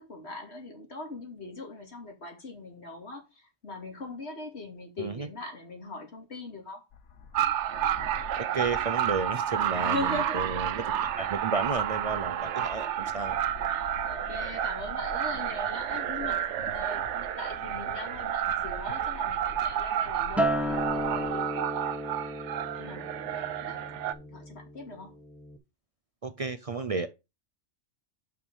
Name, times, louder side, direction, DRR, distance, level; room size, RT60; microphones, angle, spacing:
voice 1, 0.0-6.8 9.8-10.5 11.2-11.4 12.6-12.7 13.7-25.2, left 2 dB, 60° left, 2.7 m, -41 dB
sound 1, 6.9-21.3, left 5 dB, 75° left, 1.3 m, -46 dB
sound 2, 7.3-24.1, right 10 dB, 75° right, 0.9 m, -31 dB
voice 2, 8.4-10.0 10.3-13.4 26.2-27.1, right 4 dB, 45° right, 0.5 m, -32 dB
Acoustic guitar, 20.4-24.8 25.2-25.6, right 1 dB, ahead, 0.9 m, -33 dB
6.0 x 5.8 x 5.5 m
omnidirectional pair, 1.3 m